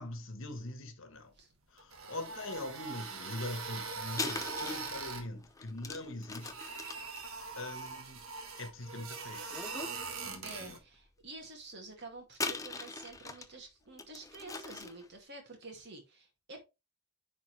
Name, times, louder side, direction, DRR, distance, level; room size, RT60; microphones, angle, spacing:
voice 1, 0.0-1.3 1.7-6.6 7.6-8.2 8.6-9.4 10.2-10.8, left 2 dB, 60° left, 1.3 m, -42 dB
sound 1, 1.8-5.3 6.2-10.8, right 4 dB, 75° right, 1.5 m, -42 dB
sound 2, 2.5-2.8 4.1-8.9 9.4-10.0 10.5-10.6 12.3-13.6 14.0-15.1, left 4 dB, 15° left, 0.5 m, -41 dB
voice 2, 10.4-16.6, right 2 dB, 50° right, 2.3 m, -49 dB
9.9 x 4.3 x 3.3 m
head